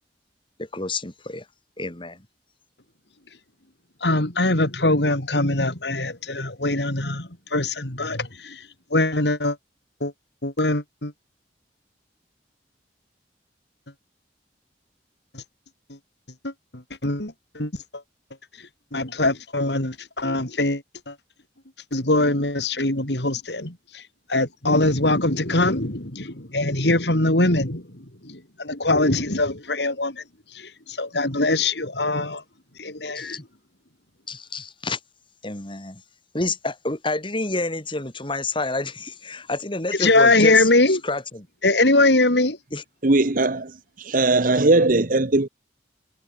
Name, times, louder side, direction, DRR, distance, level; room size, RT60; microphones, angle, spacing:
voice 1, 0.6-1.5 1.8-2.2 33.1-33.4 34.3-35.0 35.4-36.0 36.3-41.5 42.7-42.8, left 2 dB, 30° left, 3.0 m, -29 dB
voice 2, 4.0-9.6 10.0-10.1 10.4-11.1 15.3-15.4 15.9-16.0 16.4-18.0 18.6-21.2 21.9-24.0 24.3-30.2 30.5-32.4 32.8-33.4 40.0-41.0 41.6-42.6, left 2 dB, 75° left, 4.5 m, -22 dB
voice 3, 43.0-45.5, right 2 dB, 50° right, 1.2 m, -19 dB
head